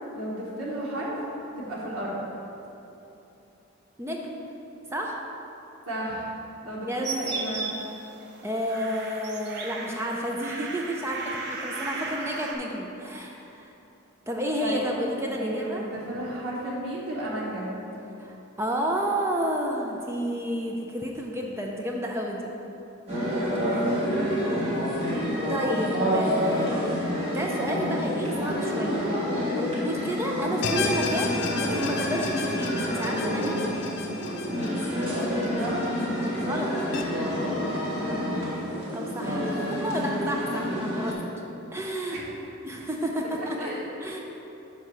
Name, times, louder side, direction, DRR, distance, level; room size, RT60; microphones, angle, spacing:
voice 1, 0.1-1.2 1.5-2.2 5.9-6.3 6.6-7.7 11.9-12.1 14.6-14.8 15.3-17.8 23.6-24.8 35.4-35.8 39.2-40.1 42.1-42.3 43.4-43.9, right 1 dB, 85° right, -6 dB, 1.2 m, -34 dB
voice 2, 4.0-4.5 4.9-5.2 6.9-7.1 8.4-13.7 14.3-15.8 18.2-22.5 25.5-27.0 27.3-29.1 29.5-33.7 36.4-36.7 38.9-41.2 41.7-42.2 42.6-43.7 44.0-44.2, equal, 10° right, 0 dB, 0.4 m, -31 dB
sound 1, 7.0-12.6, right 3 dB, 50° right, 0.6 m, -36 dB
sound 2, 23.1-41.1, equal, 30° right, 1.5 m, -28 dB
sound 3, 30.6-37.0, left 4 dB, 50° left, 0.6 m, -33 dB
5.4 x 4.7 x 6.1 m, 3.0 s
head